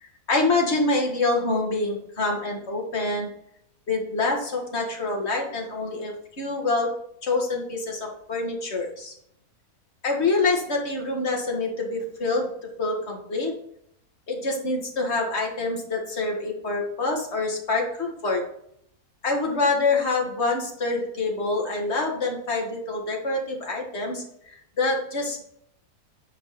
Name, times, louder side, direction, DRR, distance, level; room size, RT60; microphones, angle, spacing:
voice 1, 0.0-3.3 3.9-6.9 7.2-9.1 10.0-12.5 12.8-13.5 14.3-18.4 19.2-25.4, left 3 dB, 45° left, 0 dB, 1.9 m, -26 dB
9.5 x 4.8 x 4.2 m, 0.71 s
omnidirectional pair, 1.6 m